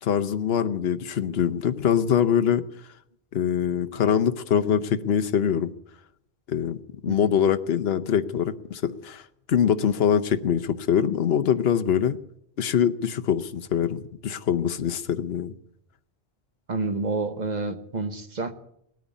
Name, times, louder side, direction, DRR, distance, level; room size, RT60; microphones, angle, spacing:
voice 1, 0.0-2.6 3.3-5.7 6.5-6.8 7.0-9.2 9.5-12.2 12.6-15.5, left 8 dB, 70° left, 10 dB, 1.0 m, -23 dB
voice 2, 16.7-18.5, right 3 dB, 40° right, 8 dB, 1.3 m, -29 dB
18.5 x 9.3 x 8.3 m, 0.76 s
omnidirectional pair, 1.1 m